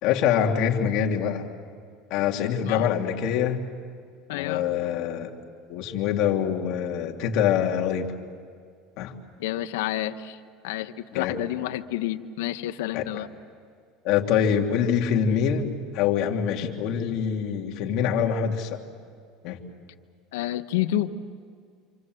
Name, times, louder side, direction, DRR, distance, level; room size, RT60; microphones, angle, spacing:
voice 1, 0.0-1.5 2.1-3.6 4.3-5.3 5.7-8.1 9.0-9.1 11.1-11.4 12.9-13.0 14.0-18.8 19.4-19.6, left 8 dB, 60° left, 2 dB, 3.0 m, -25 dB
voice 2, 2.6-3.0 4.3-4.6 9.4-10.4 10.6-13.3 20.3-21.1, left 13 dB, 90° left, 10 dB, 1.2 m, -29 dB
27.5 x 27.0 x 8.0 m, 2.1 s
supercardioid pair, 125°, 0 cm